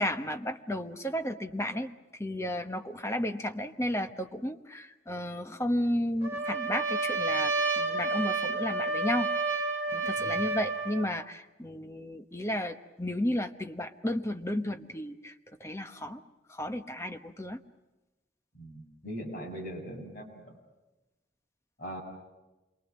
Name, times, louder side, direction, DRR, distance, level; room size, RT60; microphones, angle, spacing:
voice 1, 0.0-1.9 2.2-9.3 9.9-15.3 15.6-16.2 16.5-17.6, left 1 dB, 15° left, 7 dB, 1.0 m, -33 dB
Trumpet, 6.2-11.1, right 3 dB, 15° right, 3.8 m, -30 dB
voice 2, 18.5-20.6 21.8-22.0, equal, 50° left, 0 dB, 6.9 m, -40 dB
27.5 x 23.0 x 7.5 m, 1.1 s
head